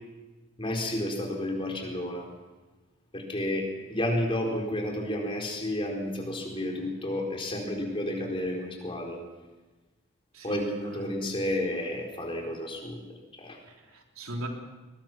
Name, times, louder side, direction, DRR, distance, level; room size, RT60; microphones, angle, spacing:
voice 1, 0.6-2.3 3.1-9.2 10.4-13.0 13.3-13.6, left 1 dB, 25° left, 1 dB, 4.3 m, -31 dB
voice 2, 10.3-11.1 13.7-14.5, right 1 dB, 80° right, 2 dB, 3.4 m, -38 dB
23.0 x 21.5 x 6.1 m, 1.2 s
head